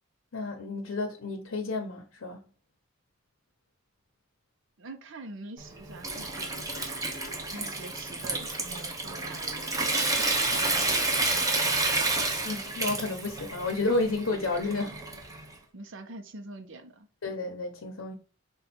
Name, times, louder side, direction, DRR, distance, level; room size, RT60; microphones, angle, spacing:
voice 1, 0.3-2.4 7.6-7.7 12.4-15.0 17.2-18.1, left 3 dB, 85° left, 0.8 m, -31 dB
voice 2, 4.8-7.0 7.5-10.0 10.5-12.1 14.7-15.0 15.7-17.1, right 2 dB, 65° right, 0.7 m, -45 dB
Water tap faucet / Sink (filling or washing) / Trickle dribble, 5.6-15.5, right 2 dB, 15° right, 0.8 m, -30 dB
5.3 x 2.3 x 4.3 m
head